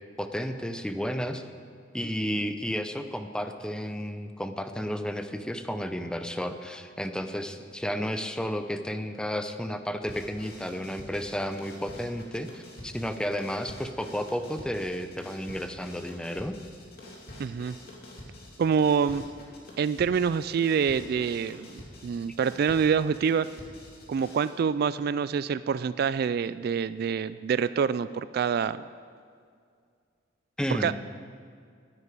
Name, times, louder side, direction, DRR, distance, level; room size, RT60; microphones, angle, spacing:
voice 1, 0.2-1.4 1.9-16.6 30.6-30.9, equal, 5° left, 8 dB, 0.6 m, -32 dB
sound 1, 10.1-24.6, left 1 dB, 55° left, 2.6 m, -47 dB
voice 2, 17.4-17.7 18.6-19.2 19.8-21.7 22.0-23.5 24.1-28.8 30.7-30.9, right 6 dB, 55° right, 15 dB, 0.3 m, -26 dB
9.8 x 9.7 x 9.3 m, 2.2 s
head